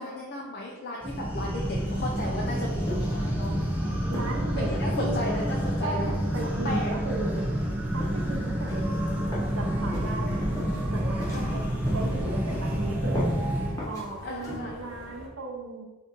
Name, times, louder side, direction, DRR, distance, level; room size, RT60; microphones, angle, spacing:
voice 1, 0.0-3.5 4.6-6.1 6.4-6.9 10.3-10.5 11.3-11.6 14.2-14.7, left 1 dB, 45° left, -2 dB, 0.5 m, -35 dB
sound 1, 1.0-13.7, equal, 10° right, 0.5 m, -28 dB
sound 2, 1.5-15.3, equal, 75° left, 1.0 m, -46 dB
sound 3, 2.9-3.2 3.5-3.8 4.1-4.4 4.7-4.9 5.4-5.6 6.0-6.3 6.7-6.9 7.4-7.7 8.0-8.2 8.7-8.9 9.3-9.6 9.9-10.2 10.6-10.8 11.2-11.5 11.9-12.1 12.5-12.8 13.1-13.4 13.8-14.0 14.4-14.6, left 1 dB, 15° left, 0.9 m, -36 dB
voice 2, 4.1-5.2 5.8-7.5 7.9-9.3 9.5-10.5 10.9-11.6 11.9-13.5 13.8-15.8, right 3 dB, 65° right, 0 dB, 0.7 m, -36 dB
3.8 x 2.7 x 3.5 m, 1.2 s
head